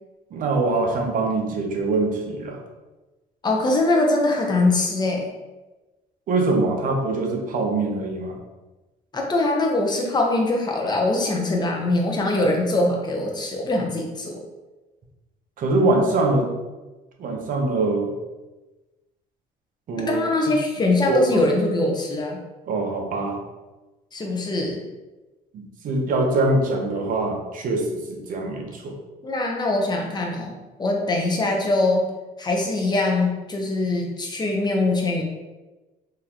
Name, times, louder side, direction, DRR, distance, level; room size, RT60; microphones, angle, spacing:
voice 1, 0.3-2.6 6.3-8.4 15.6-16.5 17.2-18.1 19.9-20.2 21.1-21.4 22.7-23.4 25.5-28.9, right 2 dB, 55° right, 1 dB, 0.8 m, -23 dB
voice 2, 3.4-5.3 9.1-14.4 19.9-22.4 24.1-24.8 29.2-30.5 30.8-32.1 32.4-35.2, left 2 dB, 25° left, 0 dB, 0.8 m, -22 dB
3.8 x 2.9 x 2.8 m, 1.1 s
cardioid pair, 110°, 17 cm